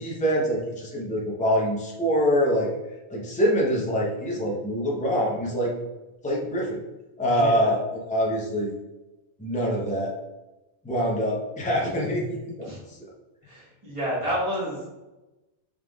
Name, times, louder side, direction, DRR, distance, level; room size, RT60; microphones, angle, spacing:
voice 1, 0.0-2.7 3.1-5.7 6.2-6.8 7.2-8.7 9.4-10.1 10.8-12.7, equal, 10° left, -3 dB, 0.7 m, -25 dB
voice 2, 7.3-7.7 12.7-12.8 13.5-14.9, equal, 30° right, -7 dB, 1.6 m, -30 dB
5.2 x 3.8 x 2.3 m, 1.0 s
omnidirectional pair, 1.1 m